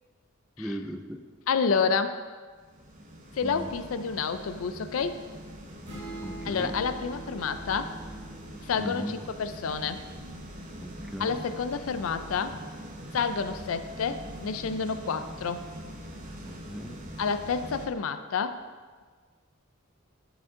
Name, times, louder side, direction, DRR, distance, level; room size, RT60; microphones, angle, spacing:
voice 1, 0.6-1.2 3.4-3.7 6.2-6.7 8.8-9.2 10.8-11.3 16.4-17.0, equal, 5° right, 4 dB, 0.4 m, -37 dB
voice 2, 1.5-2.2 3.4-5.2 6.4-7.9 8.7-10.0 11.2-12.6 13.1-15.7 17.2-18.6, left 5 dB, 80° left, 11 dB, 0.4 m, -29 dB
sound 1, 2.6-17.9, equal, 40° right, 0.8 m, -43 dB
sound 2, 5.8-9.6, right 2 dB, 55° right, 1.9 m, -44 dB
11.0 x 5.2 x 3.7 m, 1.5 s
head